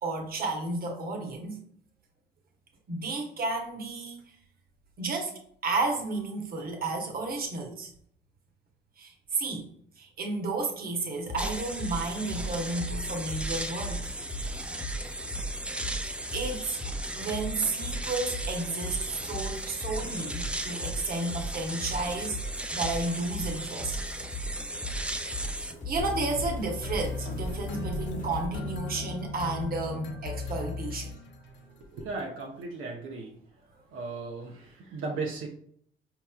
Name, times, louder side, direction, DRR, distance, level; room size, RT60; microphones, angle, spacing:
voice 1, 0.0-1.6 2.9-4.2 5.0-5.3 5.6-7.9 9.0-9.7 10.0-14.1 16.3-16.8 17.1-22.4 22.7-24.0 25.7-31.1, right 3 dB, 50° right, 2 dB, 0.9 m, -32 dB
sound 1, 11.3-28.5, equal, 35° left, 1.0 m, -38 dB
sound 2, 11.4-25.7, right 1 dB, 5° right, 0.3 m, -37 dB
sound 3, 26.0-31.7, left 4 dB, 65° left, 0.6 m, -36 dB
voice 2, 31.7-33.4 33.9-35.5, right 3 dB, 80° right, 0 dB, 0.7 m, -36 dB
4.6 x 2.9 x 2.2 m, 0.66 s
cardioid pair, 90°, 20 cm